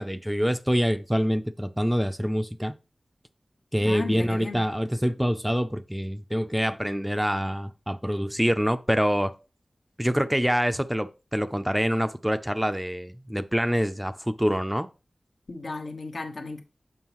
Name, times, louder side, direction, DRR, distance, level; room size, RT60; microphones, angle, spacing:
voice 1, 0.0-2.7 3.7-9.3 10.0-14.9, equal, 5° right, 0.4 m, -26 dB
voice 2, 3.8-4.6 15.5-16.6, left 3 dB, 75° left, 1.1 m, -34 dB
6.8 x 5.5 x 3.0 m
wide cardioid pair, 60°, 0 cm